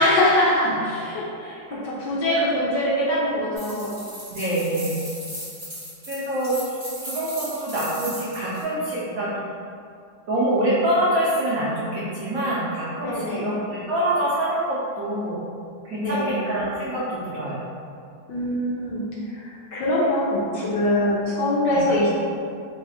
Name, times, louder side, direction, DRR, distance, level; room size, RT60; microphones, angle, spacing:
voice 1, 0.0-4.0 13.0-13.6 16.0-16.5 18.3-19.0 19.3-22.1, left 1 dB, 70° left, -6 dB, 1.1 m, -23 dB
sound 1, 3.6-8.6, equal, 15° right, 1.0 m, -37 dB
voice 2, 4.3-5.0 6.1-6.8 7.0-9.3 10.3-15.4 15.8-17.6 21.7-21.9, right 1 dB, 90° right, -9 dB, 0.7 m, -25 dB
3.4 x 2.4 x 4.1 m, 2.3 s
omnidirectional pair, 2.3 m